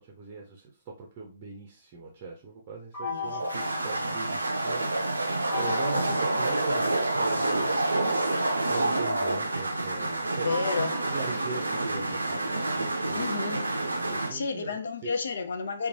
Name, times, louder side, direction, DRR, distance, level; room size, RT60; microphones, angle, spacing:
voice 1, 0.0-5.3 5.6-7.8 8.7-10.5 11.1-13.2 13.8-15.1, right 4 dB, 30° right, 0.6 m, -40 dB
sound 1, 2.9-4.7 5.4-7.2 7.9-12.2, left 4 dB, 30° left, 1.1 m, -40 dB
sound 2, 3.2-14.3, right 2 dB, 80° right, 0.4 m, -28 dB
voice 2, 10.4-10.9 13.1-13.7 14.3-15.9, left 4 dB, 60° left, 0.4 m, -31 dB
3.0 x 2.2 x 2.6 m
figure-of-eight pair, 125°, 0 cm